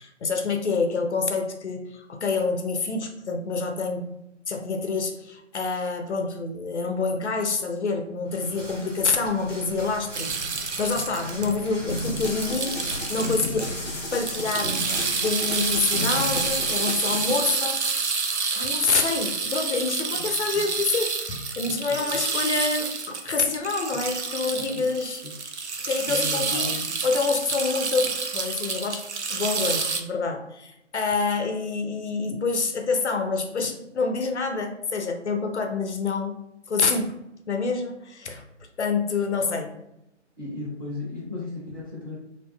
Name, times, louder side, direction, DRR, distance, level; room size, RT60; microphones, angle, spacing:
voice 1, 0.0-4.1 4.5-10.3 10.8-12.8 13.1-13.7 14.1-14.8 15.2-17.8 18.5-25.2 25.9-36.4 36.7-37.2 37.5-38.4 38.8-39.7, left 4 dB, 70° left, 4 dB, 0.5 m, -27 dB
sound 1, 8.2-16.8, equal, 85° right, 1.3 m, -39 dB
sound 2, 10.1-13.7 14.0-30.0, right 5 dB, 70° right, 0.5 m, -29 dB
voice 2, 10.2-10.7 10.9-11.1 20.1-20.7 21.6-22.2 23.9-24.0 24.6-24.9 25.2-25.3 26.1-26.9 40.4-42.1, left 3 dB, 20° right, -9 dB, 0.5 m, -37 dB
sound 3, 11.9-17.4, left 1 dB, 35° left, 1.0 m, -33 dB
2.5 x 2.2 x 2.2 m, 0.82 s
figure-of-eight pair, 145°, 36 cm